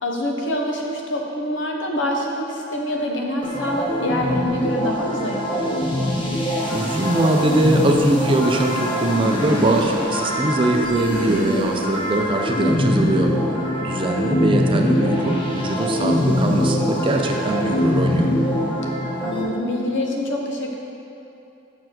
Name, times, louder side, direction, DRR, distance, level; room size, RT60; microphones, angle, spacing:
voice 1, 0.0-5.8 13.7-13.8 19.2-20.8, left 1 dB, 70° left, 0 dB, 0.9 m, -26 dB
sound 1, 3.4-19.4, left 1 dB, 25° left, 0.9 m, -23 dB
voice 2, 6.7-13.3 13.8-18.3, right 1 dB, 25° right, 2 dB, 0.5 m, -21 dB
6.4 x 4.5 x 5.9 m, 2.8 s
head